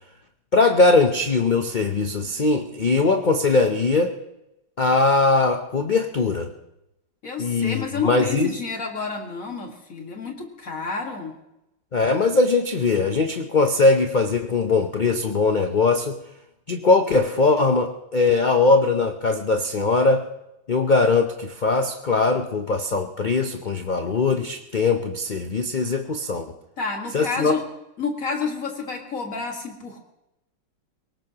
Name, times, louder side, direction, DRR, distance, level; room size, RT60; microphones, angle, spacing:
voice 1, 0.5-4.1 4.8-6.5 7.4-8.6 11.9-16.2 16.7-20.3 20.7-26.5 27.1-27.5, left 3 dB, 90° left, 6 dB, 0.4 m, -20 dB
voice 2, 7.2-11.3 26.8-27.6 28.0-30.0, left 4 dB, 50° left, 2 dB, 2.1 m, -30 dB
23.0 x 18.5 x 2.9 m, 0.90 s
omnidirectional pair, 1.9 m